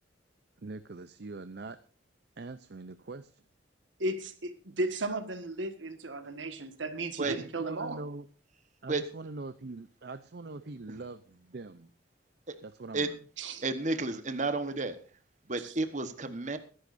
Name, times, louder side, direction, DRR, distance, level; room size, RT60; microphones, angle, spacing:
voice 1, 0.6-1.8 2.4-3.4 7.2-8.3 8.8-11.9 12.6-13.2, right 3 dB, 60° right, 12 dB, 0.6 m, -43 dB
voice 2, 4.0-8.0 13.4-13.6 15.6-15.7, right 2 dB, 90° right, 9 dB, 1.7 m, -35 dB
voice 3, 13.6-15.0 15.5-16.6, right 3 dB, 40° right, 10 dB, 1.2 m, -31 dB
21.5 x 11.0 x 2.6 m, 0.38 s
head